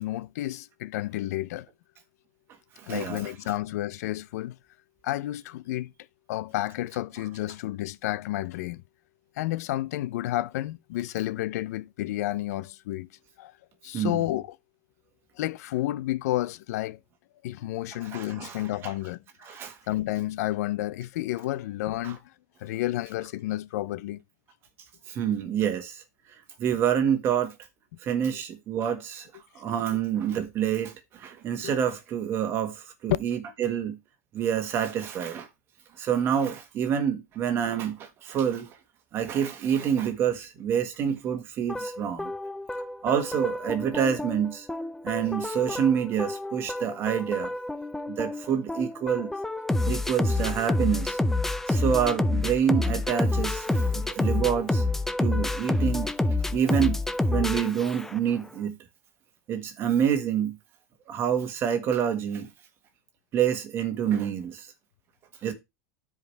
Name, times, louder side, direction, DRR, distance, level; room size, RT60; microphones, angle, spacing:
voice 1, 0.0-1.7 2.9-4.6 5.0-5.9 6.3-8.8 9.4-13.1 13.4-13.5 13.8-14.6 15.4-17.0 17.4-19.2 19.5-19.6 19.9-22.3 22.6-24.2 31.6-31.8, left 15 dB, 85° left, 0.5 m, -31 dB
voice 2, 2.8-3.3 13.9-14.3 18.1-18.9 19.4-19.7 22.0-22.1 25.1-26.0 26.6-27.5 28.0-29.3 29.5-34.0 34.3-35.5 36.0-38.7 39.1-42.3 43.0-44.7 45.0-47.5 48.1-49.3 49.8-51.2 51.7-54.8 55.2-56.1 56.5-57.0 57.3-58.7 59.5-60.6 61.1-62.5 63.3-64.7 65.4-65.5, right 8 dB, 30° right, 1.6 m, -27 dB
sound 1, 41.7-58.3, left 2 dB, 5° left, 0.4 m, -28 dB
13.5 x 4.9 x 3.3 m
supercardioid pair, 170°, 8 cm